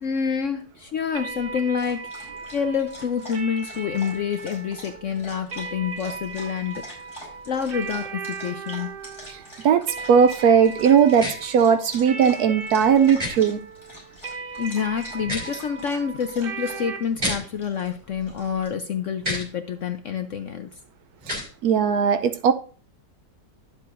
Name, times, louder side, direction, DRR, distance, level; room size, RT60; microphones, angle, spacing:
voice 1, 0.0-6.8 7.5-8.9 14.6-20.7, left 7 dB, 60° left, 0.8 m, -27 dB
sound 1, 1.1-17.0, right 4 dB, 40° right, 0.9 m, -38 dB
Dog, 1.3-18.7, left 1 dB, 15° left, 4.9 m, -45 dB
voice 2, 9.3-13.6 21.3-21.4 21.6-22.5, right 7 dB, 70° right, 1.0 m, -18 dB
sound 2, 11.2-11.3 13.2-13.3 15.2-15.5 17.2-17.4 19.2-19.5 21.2-21.5, equal, 20° right, 3.0 m, -28 dB
11.5 x 7.5 x 2.5 m
omnidirectional pair, 1.9 m